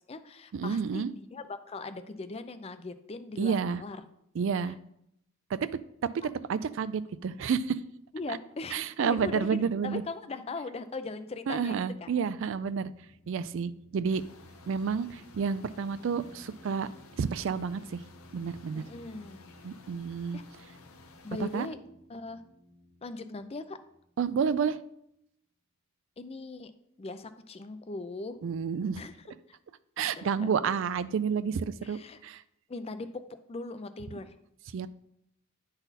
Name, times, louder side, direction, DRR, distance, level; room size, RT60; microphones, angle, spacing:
voice 1, 0.0-4.0 4.6-4.7 8.1-9.6 9.8-12.1 18.7-19.4 20.3-20.4 21.2-21.8 22.1-22.4 23.0-23.8 26.2-26.7 27.0-28.4 29.0-29.1 29.5-29.6 30.0-30.5 31.8-32.2 32.7-34.3, left 3 dB, 30° left, 11 dB, 0.4 m, -40 dB
voice 2, 0.5-1.1 3.4-3.8 4.4-4.8 5.5-5.7 6.0-6.1 6.5-7.8 8.3-8.4 8.7-10.0 11.5-12.9 13.3-14.2 14.7-16.9 17.2-18.0 18.3-18.8 19.6-20.4 21.4-21.7 24.2-24.8 28.4-29.0 30.0-32.4 34.7-34.9, right 6 dB, 60° right, 15 dB, 0.3 m, -30 dB
sound 1, 11.3-24.8, left 1 dB, 55° left, 1.2 m, -58 dB
sound 2, 14.1-21.7, left 4 dB, 80° left, 0.7 m, -55 dB
10.0 x 4.0 x 4.1 m, 0.77 s
head